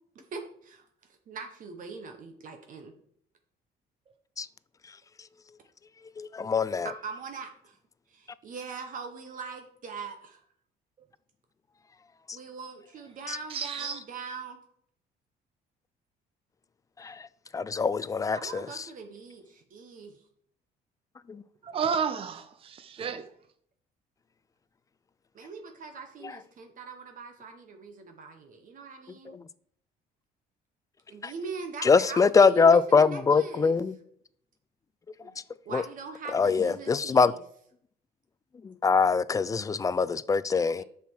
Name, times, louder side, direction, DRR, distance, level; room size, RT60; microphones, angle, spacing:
voice 1, 0.3-0.8 1.3-2.9 6.8-7.8 8.1-10.4 12.3-14.6 18.3-20.2 25.3-29.4 31.1-33.7 35.2-35.4 35.6-37.4 40.8-40.9, right 5 dB, 50° right, 1.1 m, -41 dB
voice 2, 6.2-6.9 17.0-17.3 17.5-18.6 21.3-21.4 26.2-26.3 29.3-29.4 31.2-31.3 31.8-33.9 35.7-35.8 36.3-37.3 38.6-40.8, left 5 dB, 20° left, 0.3 m, -23 dB
voice 3, 13.5-14.0 21.6-23.3, right 6 dB, 35° right, 0.6 m, -31 dB
6.9 x 5.8 x 4.7 m
cardioid pair, 110°, 17 cm